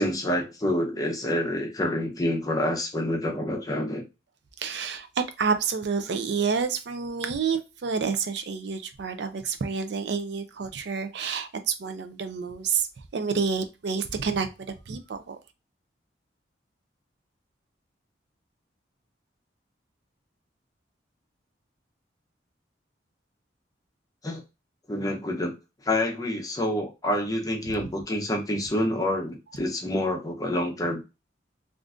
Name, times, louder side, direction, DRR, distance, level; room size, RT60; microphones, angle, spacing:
voice 1, 0.0-4.0 24.2-24.4 24.9-25.5 25.8-31.0, left 1 dB, 20° left, 0.6 m, -27 dB
voice 2, 4.6-12.9 13.1-15.4 27.6-27.8, right 5 dB, 65° right, 0.4 m, -29 dB
3.6 x 2.5 x 2.4 m
head